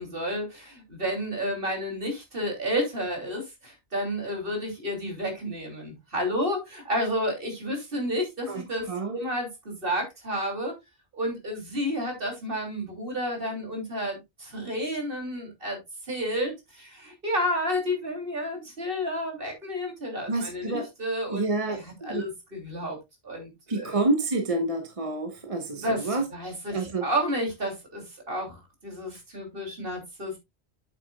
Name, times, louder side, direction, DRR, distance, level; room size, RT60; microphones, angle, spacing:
voice 1, 0.0-10.7 11.1-15.8 16.1-23.0 23.2-24.0 25.7-30.4, equal, 50° right, 3.2 m, -31 dB
voice 2, 8.5-9.1 20.3-20.9 21.3-22.3 23.7-26.2 26.7-27.1, right 2 dB, 30° right, 1.1 m, -28 dB
8.3 x 8.1 x 2.3 m
omnidirectional pair, 1.2 m